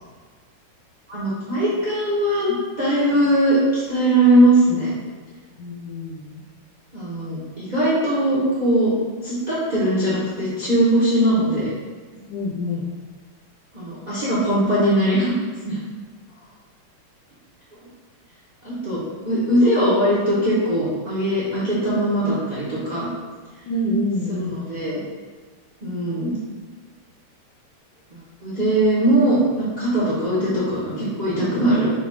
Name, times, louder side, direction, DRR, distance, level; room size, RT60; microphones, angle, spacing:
voice 1, 1.1-4.9 6.9-8.9 9.2-11.7 13.7-15.3 15.6-15.8 18.6-23.1 24.3-25.0 25.8-26.4 28.1-31.9, right 1 dB, 75° right, -9 dB, 0.4 m, -20 dB
voice 2, 5.6-6.4 12.1-12.9 23.7-24.6, left 1 dB, 75° left, -4 dB, 1.0 m, -27 dB
5.0 x 2.3 x 3.6 m, 1.4 s
omnidirectional pair, 2.4 m